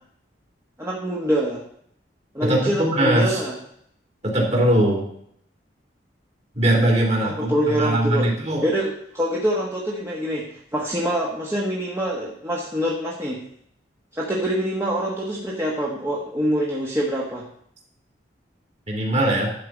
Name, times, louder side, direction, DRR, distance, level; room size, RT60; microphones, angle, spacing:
voice 1, 0.8-1.6 2.3-3.6 7.2-8.3 8.6-13.4 14.1-17.5, equal, 15° right, -4 dB, 1.4 m, -25 dB
voice 2, 2.4-3.4 4.2-5.1 6.5-8.6 18.9-19.5, right 1 dB, 35° right, -1 dB, 2.9 m, -20 dB
11.5 x 4.8 x 7.3 m, 0.68 s
head